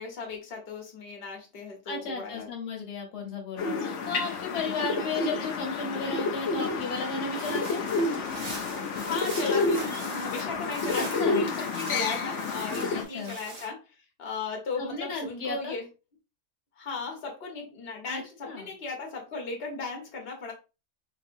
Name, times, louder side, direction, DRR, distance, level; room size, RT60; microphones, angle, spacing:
voice 1, 0.0-2.5 9.0-13.8 14.2-15.9 16.8-20.5, left 4 dB, 40° left, 0 dB, 1.2 m, -36 dB
voice 2, 1.9-7.8 10.9-11.4 12.7-13.3 14.8-15.7 18.1-18.7, left 4 dB, 85° left, 1 dB, 1.6 m, -34 dB
sound 1, 3.6-13.0, left 3 dB, 60° left, 0.8 m, -30 dB
sound 2, 7.3-13.7, right 2 dB, 40° right, 1.3 m, -42 dB
4.2 x 2.7 x 2.5 m, 0.29 s
omnidirectional pair, 1.6 m